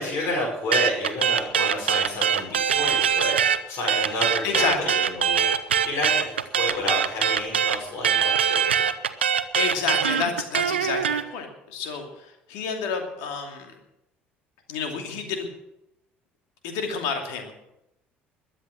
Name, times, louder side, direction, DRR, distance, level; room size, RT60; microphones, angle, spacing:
voice 1, 0.0-8.8, left 1 dB, 45° left, -5 dB, 6.1 m, -30 dB
sound 1, 0.7-3.6 3.9-11.2, right 8 dB, 80° right, 0.6 m, -22 dB
voice 2, 4.4-4.9 9.2-13.8 14.7-15.5 16.6-17.5, left 5 dB, 65° left, 4 dB, 2.7 m, -30 dB
21.5 x 7.6 x 6.5 m, 0.86 s
figure-of-eight pair, 55°, 6 cm